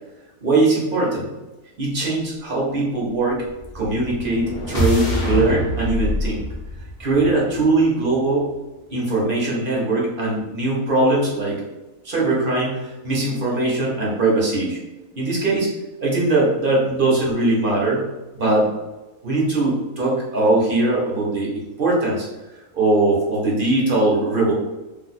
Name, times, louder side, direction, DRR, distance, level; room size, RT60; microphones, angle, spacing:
voice 1, 0.4-1.3 1.8-3.4 3.7-6.4 7.0-8.5 8.9-11.6 12.0-14.8 15.2-15.7 16.0-18.1 18.3-18.7 19.2-21.5 21.8-22.3 22.7-24.5, right 2 dB, 45° right, -4 dB, 0.8 m, -20 dB
sound 1, 3.6-7.8, equal, 40° left, 0.7 m, -25 dB
2.7 x 2.4 x 4.1 m, 1.1 s
omnidirectional pair, 1.6 m